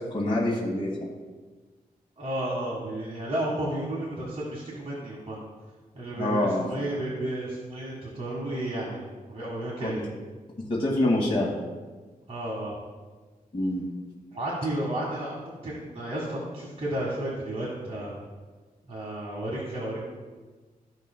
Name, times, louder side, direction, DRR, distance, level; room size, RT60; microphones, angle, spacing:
voice 1, 0.1-0.9 6.2-6.7 9.8-10.0 10.7-11.5 13.5-13.9, left 1 dB, 35° left, -5 dB, 1.7 m, -25 dB
voice 2, 2.2-5.4 5.9-10.0 12.3-12.8 14.3-18.1 18.9-20.0, right 1 dB, 40° right, -5 dB, 1.6 m, -32 dB
13.5 x 5.3 x 2.2 m, 1.4 s
wide cardioid pair, 105°, 15 cm